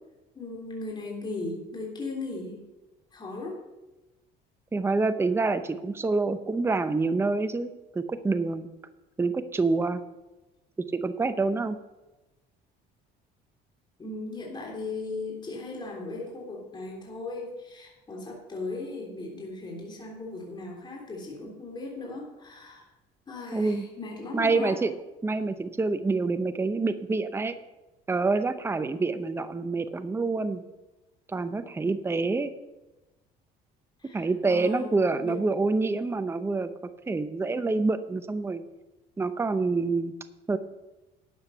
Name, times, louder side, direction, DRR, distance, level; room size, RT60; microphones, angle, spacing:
voice 1, 0.3-2.6 3.1-3.6 14.0-22.8 23.3-24.7 34.0-34.9 35.2-35.4, left 3 dB, 25° left, -2 dB, 3.5 m, -37 dB
voice 2, 4.7-8.7 9.2-10.0 10.9-11.8 23.5-23.9 24.3-24.9 25.2-27.5 28.1-30.6 31.3-32.5 34.1-36.7 37.1-38.6 39.2-40.1 40.5-40.6, right 3 dB, 15° right, 10 dB, 0.7 m, -27 dB
12.0 x 8.0 x 5.6 m, 1.0 s
cardioid pair, 110°, 18 cm